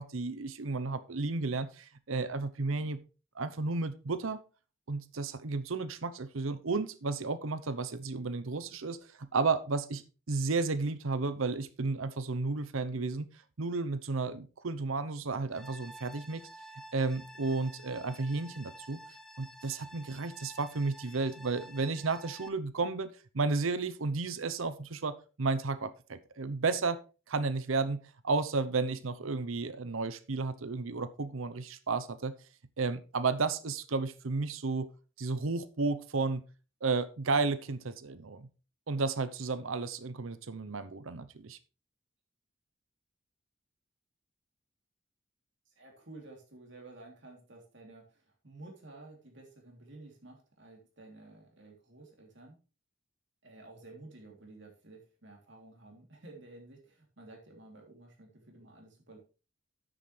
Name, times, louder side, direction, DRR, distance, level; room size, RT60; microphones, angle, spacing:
voice 1, 0.0-3.0 3.4-4.4 4.9-10.0 10.3-13.3 13.6-16.4 16.9-19.0 19.4-23.1 23.3-27.0 27.3-32.3 32.8-34.9 35.2-36.4 36.8-38.5 38.9-41.6, right 3 dB, 85° right, 14 dB, 0.8 m, -32 dB
sound 1, 15.5-22.5, equal, ahead, 0.6 m, -51 dB
voice 2, 45.7-52.6 53.4-59.2, right 2 dB, 60° right, 1 dB, 3.2 m, -52 dB
10.0 x 9.0 x 3.3 m, 0.33 s
head